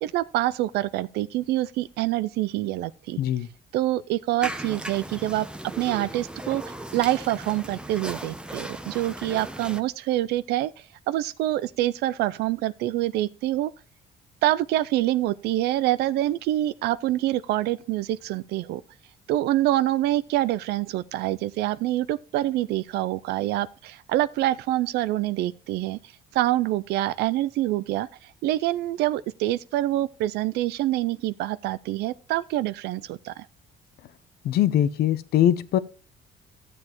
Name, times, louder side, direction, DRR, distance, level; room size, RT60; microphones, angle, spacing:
voice 1, 0.0-3.2 3.7-5.5 5.8-13.7 14.4-18.8 19.3-26.0 26.3-33.5, right 15 dB, 80° right, 0.4 m, -26 dB
voice 2, 3.2-3.5 34.4-35.8, left 11 dB, 70° left, 0.7 m, -22 dB
sound 1, 4.4-9.8, right 1 dB, 5° right, 0.8 m, -37 dB
13.5 x 7.6 x 3.0 m
cardioid pair, 110°, 17 cm